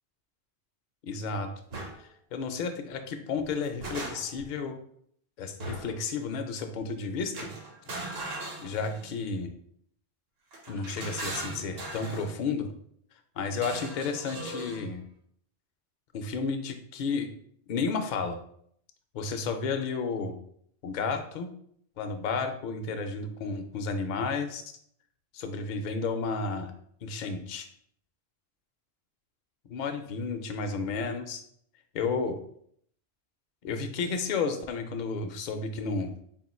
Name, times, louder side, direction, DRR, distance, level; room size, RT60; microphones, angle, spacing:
voice 1, 1.0-1.5 2.3-4.7 5.4-7.3 7.9-8.1 8.6-9.5 10.7-12.7 13.4-15.0 16.1-17.3 17.7-18.4 19.1-20.3 20.8-21.5 22.0-24.6 25.3-26.7 27.0-27.7 29.7-31.4 31.9-32.4 33.6-36.1, left 4 dB, 55° left, 6 dB, 0.5 m, -32 dB
sound 1, 1.7-1.9 3.4-4.5 5.6-6.0 7.3-9.2 10.5-12.3 13.5-14.9, right 2 dB, 65° right, 1.1 m, -39 dB
3.6 x 2.4 x 4.2 m, 0.66 s
omnidirectional pair, 1.1 m